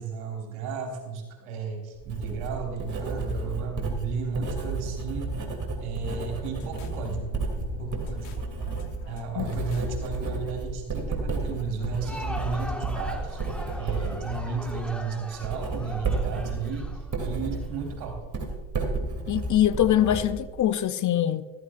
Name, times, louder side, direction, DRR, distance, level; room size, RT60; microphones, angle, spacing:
voice 1, 0.0-5.3 5.8-7.4 7.8-8.4 9.1-18.2, right 4 dB, 75° right, 3.9 m, -34 dB
Writing, 2.0-20.8, right 3 dB, 35° right, 2.9 m, -32 dB
sound 1, 6.2-14.7, left 7 dB, 75° left, 1.3 m, -44 dB
Crowd, 11.8-17.7, left 1 dB, ahead, 1.7 m, -40 dB
voice 2, 19.3-21.4, left 11 dB, 40° left, 0.6 m, -23 dB
14.5 x 13.5 x 2.5 m
hypercardioid pair, 75°, 48 cm